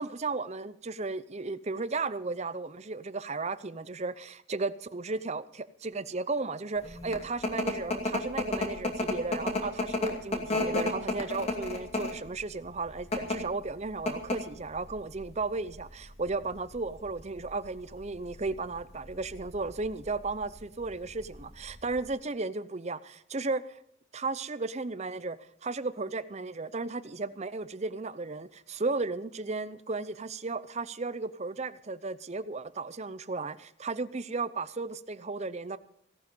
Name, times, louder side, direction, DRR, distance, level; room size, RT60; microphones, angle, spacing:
voice 1, 0.0-23.8 24.1-35.8, right 3 dB, 30° right, 15 dB, 0.6 m, -34 dB
sound 1, 6.8-22.0, left 2 dB, 30° left, 2.5 m, -34 dB
17.0 x 11.5 x 5.4 m, 0.70 s
head